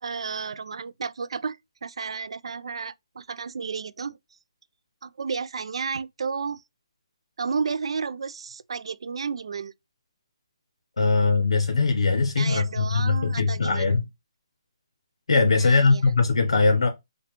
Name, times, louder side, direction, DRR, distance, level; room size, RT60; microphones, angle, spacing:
voice 1, 0.0-4.2 5.0-6.6 7.4-9.7 12.4-14.0 15.6-16.0, right 5 dB, 70° right, 0.3 m, -32 dB
voice 2, 11.0-14.0 15.3-16.9, left 4 dB, 80° left, 0.7 m, -21 dB
5.0 x 2.2 x 3.0 m
hypercardioid pair, 160°, 3 cm